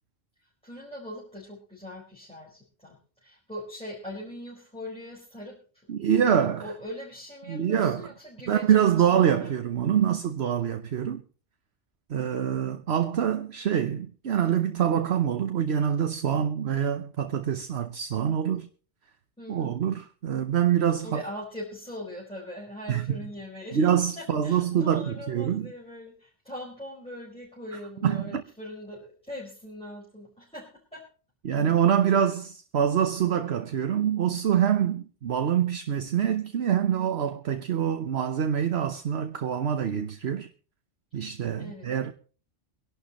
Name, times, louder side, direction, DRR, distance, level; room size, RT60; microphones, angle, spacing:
voice 1, 0.4-5.9 6.1-9.5 19.4-19.7 21.0-23.9 24.1-31.1 41.1-41.3 41.6-41.9, left 1 dB, 5° left, 4.9 m, -41 dB
voice 2, 5.9-6.6 7.5-8.1 8.5-11.2 12.1-18.7 19.5-21.2 22.9-23.1 23.7-25.7 28.0-28.4 31.4-40.5 41.1-42.1, right 9 dB, 65° right, 1.2 m, -25 dB
24.5 x 11.5 x 3.0 m
omnidirectional pair, 1.2 m